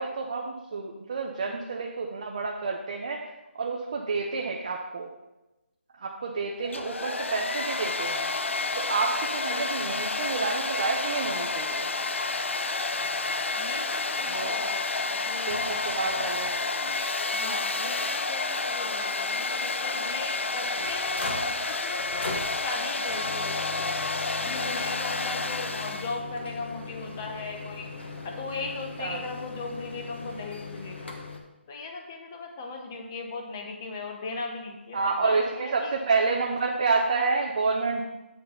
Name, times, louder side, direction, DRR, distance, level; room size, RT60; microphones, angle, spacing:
voice 1, 0.0-3.2 3.6-5.1 6.0-8.3 8.8-11.9 14.3-14.5 15.5-16.9 29.0-29.2 34.9-38.0, right 4 dB, 30° right, 1 dB, 0.5 m, -29 dB
Domestic sounds home sounds, 6.6-26.2, left 3 dB, 85° left, 0.6 m, -30 dB
voice 2, 9.5-9.9 10.3-10.4 13.6-16.2 17.3-23.9 24.4-27.9 28.2-31.1 31.7-35.9, left 3 dB, 15° left, 2 dB, 0.7 m, -38 dB
sound 1, 15.5-16.5 16.9-17.0 17.2-17.3 18.0-18.1 20.1-31.4, left 3 dB, 70° left, 1.4 m, -40 dB
8.5 x 3.9 x 5.7 m, 1.0 s
hypercardioid pair, 175°, 7 cm